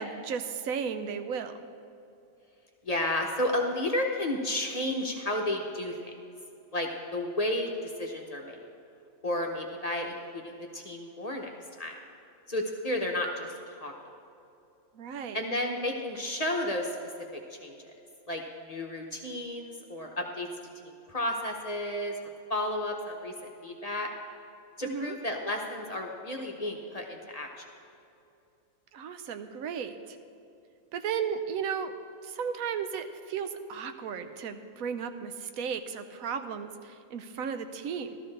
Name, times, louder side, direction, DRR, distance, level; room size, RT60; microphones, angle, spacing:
voice 1, 0.0-1.5 14.9-15.4 24.8-25.2 28.9-30.2 30.9-31.9 32.2-38.2, right 7 dB, 85° right, 8 dB, 1.1 m, -35 dB
voice 2, 2.8-6.0 6.7-8.6 9.2-11.5 11.8-11.9 12.5-13.9 15.3-16.9 17.3-17.8 18.3-20.5 20.8-22.1 22.5-23.3 23.6-24.1 24.8-27.6, left 1 dB, 35° left, 1 dB, 0.8 m, -32 dB
14.5 x 13.0 x 3.3 m, 2.6 s
omnidirectional pair, 1.4 m